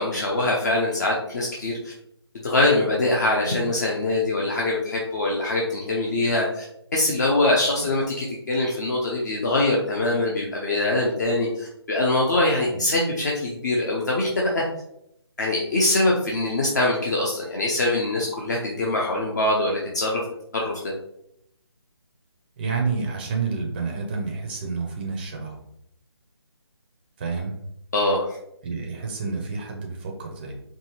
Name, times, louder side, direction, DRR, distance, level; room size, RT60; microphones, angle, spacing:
voice 1, 0.0-1.9 2.4-6.6 6.9-14.6 15.4-20.2 20.5-20.7 27.9-28.4, left 2 dB, 40° left, -3 dB, 0.7 m, -23 dB
voice 2, 22.6-25.6 27.2-27.5 28.6-30.6, right 4 dB, 20° right, 1 dB, 0.6 m, -29 dB
4.7 x 2.8 x 3.0 m, 0.75 s
figure-of-eight pair, 150°, 14 cm